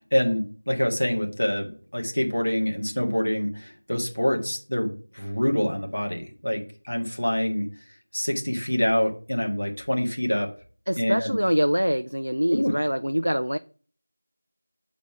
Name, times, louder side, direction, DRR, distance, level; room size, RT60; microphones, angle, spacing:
voice 1, 0.0-7.7 8.1-10.5 11.0-11.3 12.5-12.7, equal, 65° left, 2 dB, 1.8 m, -26 dB
voice 2, 10.9-13.6, equal, 85° right, 10 dB, 0.4 m, -24 dB
7.5 x 4.1 x 4.7 m, 0.41 s
figure-of-eight pair, 175°, 0 cm